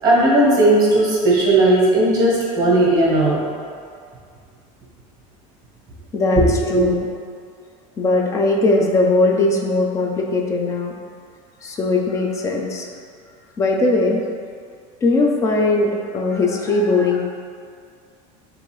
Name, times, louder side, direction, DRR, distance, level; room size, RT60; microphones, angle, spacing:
voice 1, 0.0-3.4 6.4-6.9, right 1 dB, 20° right, -5 dB, 1.3 m, -16 dB
voice 2, 6.1-7.1 8.0-10.9 11.6-12.9 13.6-14.2 15.0-17.2, left 2 dB, 20° left, 1 dB, 0.4 m, -19 dB
6.3 x 2.6 x 3.2 m, 2.2 s
cardioid pair, 160°, 17 cm